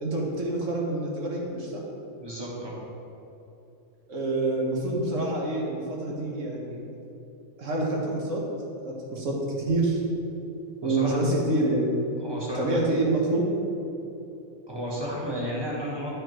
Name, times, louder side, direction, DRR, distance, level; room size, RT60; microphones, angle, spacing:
voice 1, 0.0-1.8 4.1-6.8 7.6-8.5 8.8-9.4 9.7-10.0 10.8-12.0 12.5-13.5, right 2 dB, 65° right, -2 dB, 1.5 m, -27 dB
voice 2, 2.2-2.8 10.8-11.2 12.2-12.8 14.7-16.1, equal, 20° right, -5 dB, 1.3 m, -32 dB
10.5 x 5.0 x 3.1 m, 2.9 s
omnidirectional pair, 1.4 m